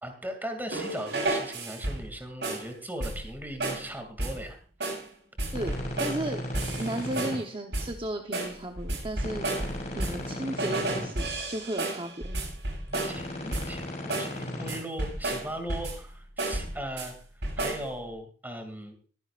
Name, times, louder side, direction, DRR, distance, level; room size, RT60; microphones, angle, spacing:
voice 1, 0.0-4.6 13.0-17.1 17.6-18.9, right 1 dB, 10° right, 5 dB, 2.5 m, -38 dB
sound 1, 0.7-2.1 2.4-2.7 3.0-3.3 3.6-3.9 4.2-4.5 4.8-5.1 5.4-6.3 6.5-7.4 7.7-8.0 8.3-10.3 10.6-13.2 13.5-13.8 14.1-14.4 14.7-16.1 16.4-17.1 17.4-17.9, right 2 dB, 75° right, 7.3 m, -32 dB
sound 2, 5.5-7.4 9.2-11.1 12.9-14.7, left 1 dB, 40° left, 6.4 m, -36 dB
voice 2, 6.0-6.4 6.8-9.5 9.9-12.4, right 1 dB, 30° right, 3 dB, 1.0 m, -34 dB
22.0 x 10.0 x 2.5 m, 0.41 s
head